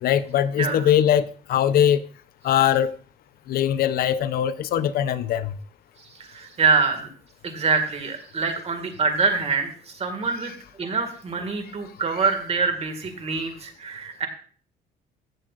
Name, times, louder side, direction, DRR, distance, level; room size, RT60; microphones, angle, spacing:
voice 1, 0.0-2.0 2.4-2.9 3.5-5.6, left 10 dB, 65° left, 0.6 m, -21 dB
voice 2, 0.6-0.9 6.1-7.1 7.4-10.5 10.8-14.3, right 4 dB, 35° right, 1.9 m, -25 dB
15.0 x 7.4 x 2.4 m
cardioid pair, 110°, 17 cm